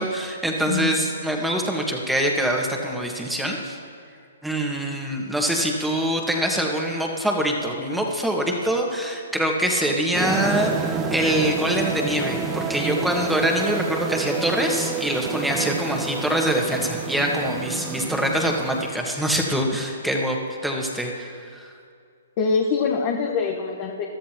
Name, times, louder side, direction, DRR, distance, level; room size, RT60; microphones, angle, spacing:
voice 1, 0.0-3.8 4.4-20.4 20.6-21.7, right 1 dB, 5° right, 0 dB, 1.7 m, -24 dB
sound 1, 10.1-18.9, right 5 dB, 20° right, 1.0 m, -29 dB
voice 2, 22.4-24.0, left 5 dB, 40° left, 0 dB, 1.2 m, -24 dB
22.0 x 13.0 x 3.0 m, 2.3 s
hypercardioid pair, 130°, 0 cm